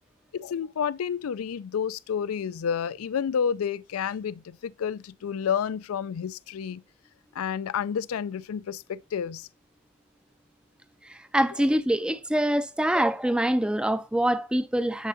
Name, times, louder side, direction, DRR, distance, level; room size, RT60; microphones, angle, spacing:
voice 1, 0.3-6.8 7.4-9.5, left 7 dB, 90° left, 0.4 m, -30 dB
voice 2, 11.1-15.1, right 1 dB, 5° right, 0.3 m, -25 dB
10.0 x 4.6 x 2.6 m
head